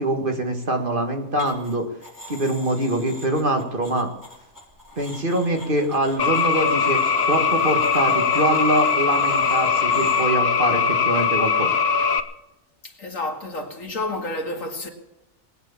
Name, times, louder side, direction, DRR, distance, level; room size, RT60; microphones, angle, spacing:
voice 1, 0.0-1.9 2.3-4.1 5.0-7.0 7.3-11.7, right 1 dB, 40° right, 1.9 m, -24 dB
sound 1, 1.4-1.7 2.0-10.2, left 1 dB, 15° right, 5.7 m, -42 dB
sound 2, 6.2-12.2, left 5 dB, 50° left, 1.1 m, -21 dB
voice 2, 12.8-14.9, left 2 dB, 65° left, 2.5 m, -30 dB
19.5 x 9.5 x 7.1 m
omnidirectional pair, 1.5 m